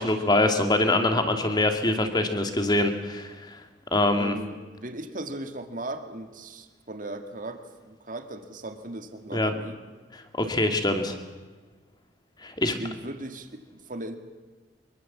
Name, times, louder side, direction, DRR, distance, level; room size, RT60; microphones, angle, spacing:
voice 1, 0.0-3.6 3.9-4.3 9.3-9.5 10.4-11.2 12.4-12.8, left 2 dB, 20° left, 6 dB, 2.1 m, -24 dB
voice 2, 4.2-9.8 12.8-14.2, right 1 dB, 45° right, 7 dB, 2.1 m, -37 dB
24.5 x 23.0 x 7.4 m, 1.4 s
head